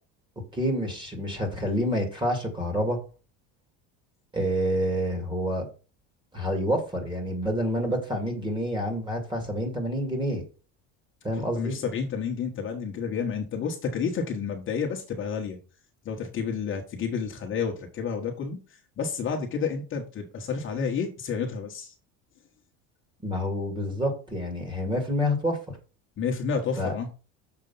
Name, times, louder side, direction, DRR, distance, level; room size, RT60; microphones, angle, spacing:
voice 1, 0.5-3.0 4.3-5.7 6.3-10.4 11.2-11.7 23.2-25.6 26.8-26.9, equal, 15° right, 4 dB, 2.2 m, -28 dB
voice 2, 11.3-15.6 16.0-18.6 19.0-21.9 26.2-27.1, left 6 dB, 35° left, 2 dB, 1.2 m, -30 dB
6.8 x 4.7 x 5.5 m, 0.34 s
cardioid pair, 155°, 35 cm